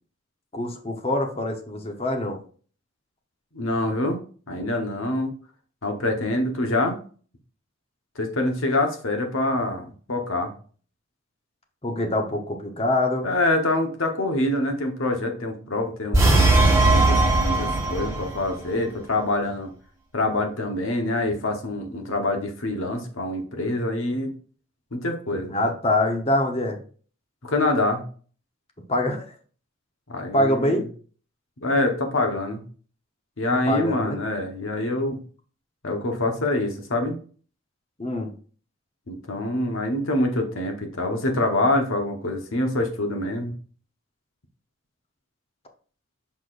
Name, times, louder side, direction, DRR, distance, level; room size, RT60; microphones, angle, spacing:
voice 1, 0.5-2.4 11.8-13.3 25.5-26.8 28.9-29.3 30.3-30.8 33.7-34.2 38.0-38.3, left 1 dB, 30° left, 4 dB, 1.0 m, -24 dB
voice 2, 3.5-4.2 4.5-5.3 5.8-7.0 8.1-10.5 13.2-16.3 16.9-19.7 20.1-24.3 24.9-25.5 27.4-28.0 30.1-30.8 31.6-32.6 33.4-35.2 35.8-37.2 39.1-43.5, left 2 dB, 80° left, 4 dB, 1.2 m, -25 dB
sound 1, 16.1-18.4, right 2 dB, 15° right, 1.4 m, -18 dB
6.5 x 5.9 x 2.6 m, 0.42 s
head